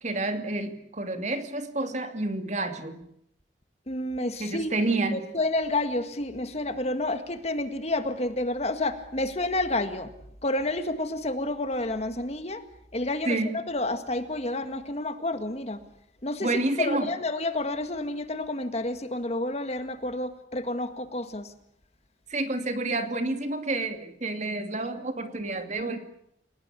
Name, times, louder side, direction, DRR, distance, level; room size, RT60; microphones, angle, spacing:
voice 1, 0.0-3.0 4.4-5.3 13.3-13.6 16.4-17.1 22.3-26.0, right 2 dB, 40° right, 7 dB, 2.7 m, -29 dB
voice 2, 3.9-4.7 5.1-10.1 10.4-12.6 12.9-15.8 16.2-21.5, left 2 dB, 35° left, 9 dB, 1.9 m, -30 dB
30.0 x 18.0 x 8.4 m, 0.72 s
head